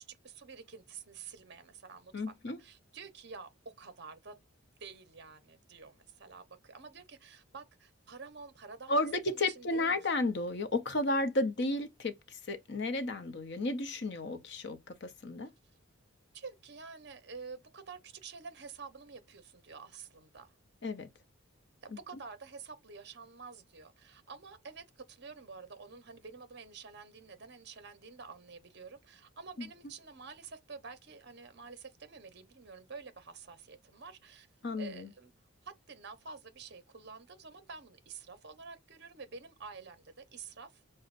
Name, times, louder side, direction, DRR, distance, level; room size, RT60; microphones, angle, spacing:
voice 1, 0.0-2.3 2.6-3.5 3.8-4.3 4.8-8.9 9.3-10.1 16.3-20.5 21.8-34.5 34.7-35.3 35.6-40.8, right 5 dB, 55° right, 0.9 m, -49 dB
voice 2, 2.1-2.6 8.9-15.5 20.8-21.1 29.6-29.7 34.6-35.1, left 2 dB, 55° left, 0.7 m, -33 dB
6.4 x 2.2 x 2.5 m
head